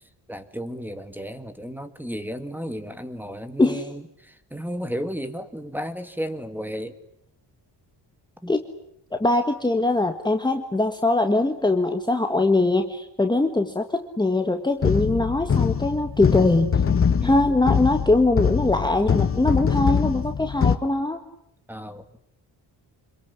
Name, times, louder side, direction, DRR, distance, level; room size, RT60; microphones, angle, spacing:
voice 1, 0.3-7.0 8.4-8.5 17.2-17.4 21.7-22.0, equal, 5° right, 10 dB, 2.1 m, -33 dB
voice 2, 9.2-16.8 17.2-21.2, left 2 dB, 10° left, 5 dB, 1.6 m, -22 dB
sound 1, 14.8-20.8, left 6 dB, 30° left, 1.3 m, -23 dB
26.5 x 22.5 x 9.8 m, 0.74 s
cardioid pair, 125°, 41 cm